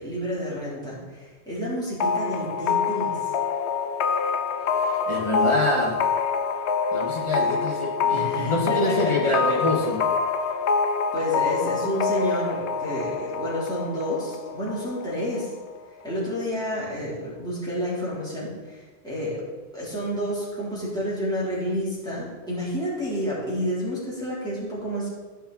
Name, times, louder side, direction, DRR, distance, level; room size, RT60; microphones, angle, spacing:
voice 1, 0.0-3.3 8.1-9.6 11.1-15.5 16.0-19.4 19.7-25.1, equal, 5° left, -9 dB, 3.6 m, -30 dB
sound 1, 2.0-15.5, left 5 dB, 85° left, 1.0 m, -26 dB
voice 2, 4.8-6.0 6.9-10.0, left 2 dB, 30° left, -2 dB, 2.0 m, -26 dB
15.0 x 5.8 x 4.2 m, 1.3 s
omnidirectional pair, 1.1 m